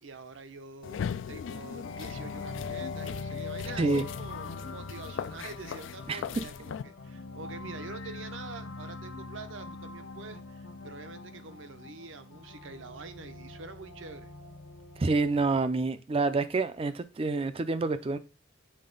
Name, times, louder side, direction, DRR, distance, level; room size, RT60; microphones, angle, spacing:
voice 1, 0.0-14.3, right 3 dB, 65° right, 0.7 m, -46 dB
sound 1, 0.8-6.8, left 7 dB, 65° left, 0.3 m, -39 dB
sound 2, 1.8-15.7, left 3 dB, 80° left, 1.0 m, -42 dB
voice 2, 15.0-18.2, right 3 dB, 25° right, 0.4 m, -27 dB
7.6 x 4.2 x 3.9 m
head